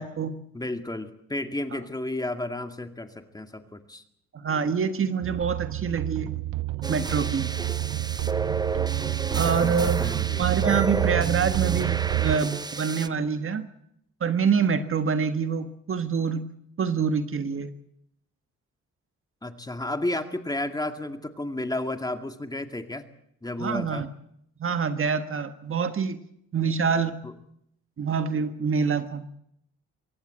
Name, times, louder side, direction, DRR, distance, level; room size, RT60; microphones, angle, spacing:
voice 1, 0.0-0.4 1.7-1.8 4.3-6.3 6.9-7.5 9.3-10.0 10.4-13.7 14.2-16.5 16.8-17.7 23.6-24.1 24.6-26.2 26.5-27.2 28.0-29.3, right 6 dB, 45° right, 9 dB, 1.5 m, -26 dB
voice 2, 0.5-4.0 9.6-10.8 19.4-23.0 23.4-24.1 27.2-27.3, left 1 dB, 15° left, 7 dB, 2.2 m, -32 dB
sound 1, 5.2-12.4, right 17 dB, 85° right, 0.9 m, -28 dB
sound 2, 6.8-13.1, right 3 dB, 15° right, 0.8 m, -31 dB
24.0 x 17.0 x 7.7 m, 0.74 s
cardioid pair, 90°, 30 cm